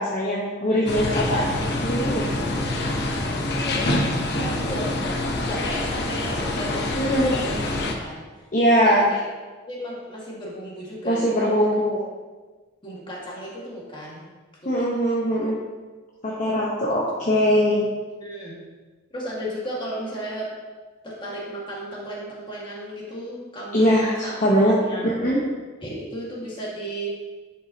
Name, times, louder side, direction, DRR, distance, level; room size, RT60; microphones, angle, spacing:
voice 1, 0.0-1.5 1.8-2.3 7.0-7.3 8.5-9.1 11.0-12.0 14.6-15.6 16.2-17.9 23.7-25.4, equal, 40° left, -5 dB, 1.1 m, -21 dB
sound 1, 0.9-7.9, left 1 dB, 55° left, 0.8 m, -26 dB
voice 2, 2.3-3.0 3.6-3.9 4.4-7.7 8.0-8.3 8.8-9.2 9.7-11.5 12.8-14.3 14.6-14.8 18.2-18.6 19.1-20.5 21.0-24.3 24.8-25.1 25.8-27.1, equal, 25° left, -5 dB, 2.0 m, -34 dB
10.5 x 5.6 x 2.9 m, 1.3 s
head